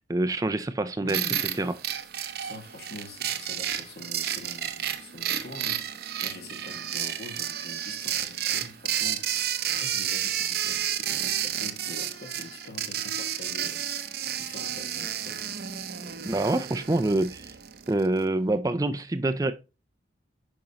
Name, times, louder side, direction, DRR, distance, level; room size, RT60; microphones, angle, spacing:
voice 1, 0.0-1.2 1.6-1.7 16.2-17.5 17.9-19.5, right 2 dB, 20° right, 0.4 m, -26 dB
voice 2, 1.0-1.6 2.4-15.4, left 2 dB, 60° left, 1.7 m, -45 dB
sound 1, 1.1-18.1, right 10 dB, 60° right, 0.7 m, -31 dB
8.6 x 5.3 x 2.9 m
head